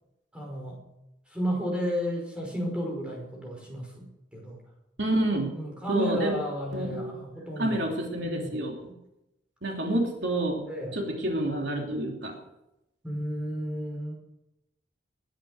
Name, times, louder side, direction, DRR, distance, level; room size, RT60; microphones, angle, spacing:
voice 1, 0.3-0.8 1.3-4.0 4.3-4.6 5.6-7.9 8.2-8.6 10.7-10.9 13.0-14.1, equal, 5° right, -1 dB, 5.4 m, -32 dB
voice 2, 5.0-5.5 5.9-6.4 6.7-7.1 7.6-8.9 9.6-10.7 10.9-12.3, right 1 dB, 65° right, 0 dB, 3.1 m, -28 dB
20.5 x 10.0 x 6.5 m, 0.88 s
head